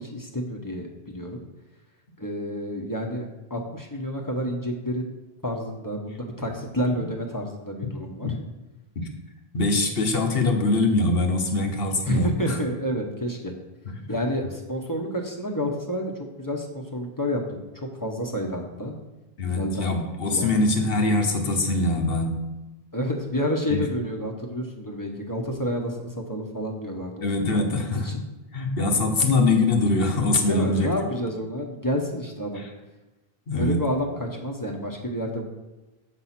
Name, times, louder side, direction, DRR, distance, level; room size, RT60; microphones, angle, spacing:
voice 1, 0.0-1.4 2.2-5.0 5.4-8.3 12.0-13.5 14.1-16.1 16.4-18.9 19.4-19.9 20.3-20.7 22.9-27.3 27.6-28.2 30.4-32.6 33.5-35.4, equal, 20° left, 1 dB, 0.8 m, -29 dB
voice 2, 9.5-12.6 13.9-14.0 19.4-22.4 23.7-23.8 27.2-28.2 28.5-30.9 32.6-32.7 33.5-33.8, left 2 dB, 70° left, 3 dB, 1.2 m, -23 dB
6.9 x 4.2 x 5.8 m, 1.1 s
omnidirectional pair, 1.0 m